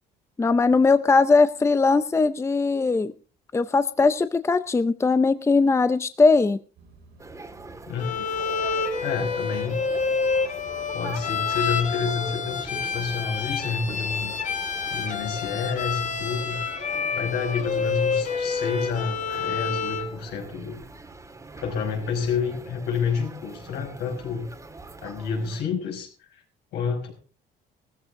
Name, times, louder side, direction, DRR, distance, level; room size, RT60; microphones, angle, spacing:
voice 1, 0.4-3.1 3.5-6.6, left 4 dB, 15° left, 13 dB, 0.6 m, -20 dB
sound 1, 6.8-16.3, right 2 dB, 85° right, 7.3 m, -52 dB
sound 2, 7.2-25.6, right 3 dB, 20° right, 1.9 m, -43 dB
voice 2, 7.9-8.3 9.0-9.8 10.9-14.3 14.9-16.6 17.1-20.8 21.6-24.5 25.0-26.4 26.7-27.1, left 5 dB, 80° left, 2 dB, 5.6 m, -29 dB
Bowed string instrument, 8.0-20.1, left 5 dB, 50° left, 1.9 m, -28 dB
16.5 x 14.0 x 3.7 m, 0.34 s
cardioid pair, 110°, 17 cm